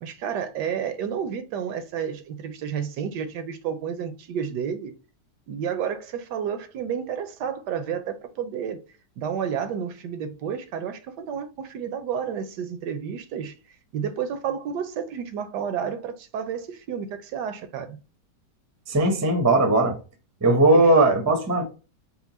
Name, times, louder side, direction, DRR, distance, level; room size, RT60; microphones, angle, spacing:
voice 1, 0.0-4.9 5.5-8.8 9.2-13.5 13.9-18.0 20.7-20.9, right 7 dB, 75° right, 1.2 m, -31 dB
voice 2, 18.9-20.0 20.4-21.6, right 2 dB, 20° right, 0.4 m, -18 dB
4.3 x 2.1 x 4.0 m
omnidirectional pair, 1.9 m